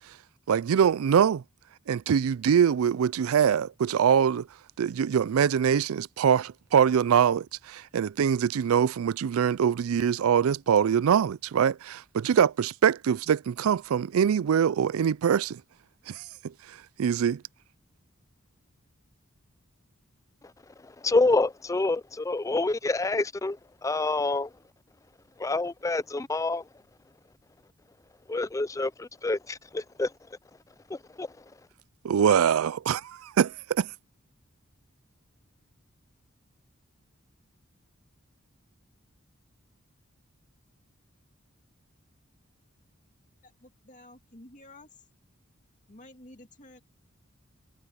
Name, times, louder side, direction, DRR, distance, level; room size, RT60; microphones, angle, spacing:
voice 1, 0.5-1.4 1.9-4.5 4.8-15.6 16.1-16.2 17.0-17.4 32.0-33.9, right 8 dB, 85° right, 0.4 m, -23 dB
voice 2, 20.8-24.5 25.4-26.6 28.3-30.1 30.9-31.4, left 3 dB, 15° left, 0.4 m, -27 dB
voice 3, 43.4-45.1 45.9-46.8, left 1 dB, 35° left, 2.4 m, -51 dB
head